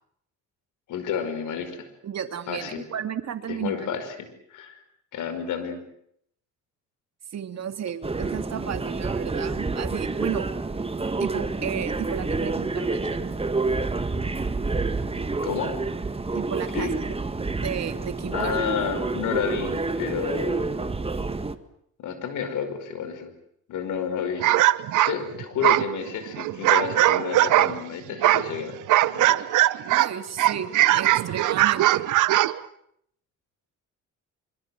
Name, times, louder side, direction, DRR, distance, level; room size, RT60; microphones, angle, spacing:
voice 1, 0.9-1.9 2.5-2.9 3.5-4.2 4.5-4.8 5.1-5.8 15.4-15.7 16.7-17.2 18.3-20.8 22.0-23.3 23.7-24.5 25.0-28.8 29.0-29.4, left 7 dB, 80° left, 10 dB, 5.3 m, -30 dB
voice 2, 2.0-3.9 7.3-10.5 11.2-13.3 16.3-17.2 17.6-18.6 29.9-32.1, right 8 dB, 60° right, 8 dB, 2.7 m, -33 dB
sound 1, 8.0-21.5, right 3 dB, 20° right, 1.8 m, -28 dB
sound 2, 24.4-27.8 28.2-30.1 30.4-32.6, right 15 dB, 85° right, 0.9 m, -20 dB
25.0 x 25.0 x 7.7 m, 0.71 s
cardioid pair, 90°, 30 cm